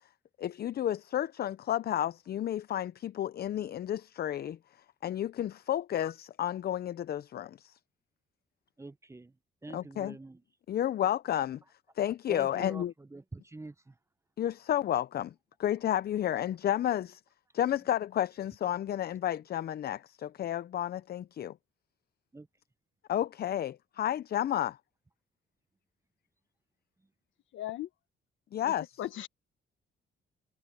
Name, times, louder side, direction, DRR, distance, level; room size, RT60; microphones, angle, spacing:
voice 1, 0.4-4.6 5.0-7.7 9.7-10.2 10.7-11.6 12.0-12.9 14.4-15.3 15.6-17.2 17.5-21.5 23.1-24.8 28.5-28.9, left 11 dB, 55° left, 0.5 m, -31 dB
voice 2, 8.8-9.3 9.6-10.4 12.3-13.9 17.8-18.0 22.3-22.5, right 2 dB, 15° right, 0.8 m, -46 dB
voice 3, 27.5-27.9 28.6-29.3, left 13 dB, 75° left, 1.3 m, -38 dB
cardioid pair, 90°, 20 cm